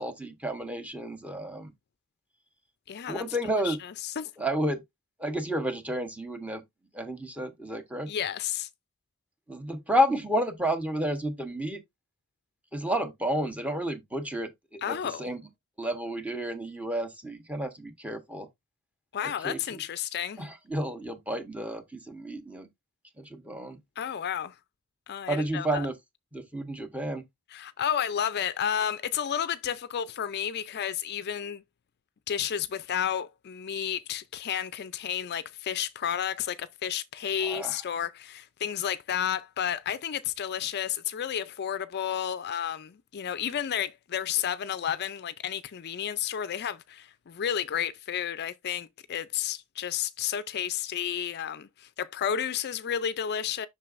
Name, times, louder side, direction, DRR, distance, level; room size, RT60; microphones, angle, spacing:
voice 1, 0.0-1.7 3.1-3.8 4.4-4.8 5.2-6.6 6.9-8.1 9.5-11.8 12.7-15.4 15.8-18.5 19.4-19.8 20.4-22.7 23.2-23.8 25.3-25.9 26.3-27.2 37.4-37.8, equal, 5° right, 1.1 m, -31 dB
voice 2, 2.9-3.2 3.6-4.3 8.1-8.7 14.8-15.3 19.1-20.4 24.0-24.5 25.1-25.9 27.5-31.6 32.3-53.7, left 9 dB, 50° left, 0.4 m, -31 dB
7.6 x 6.1 x 2.5 m
head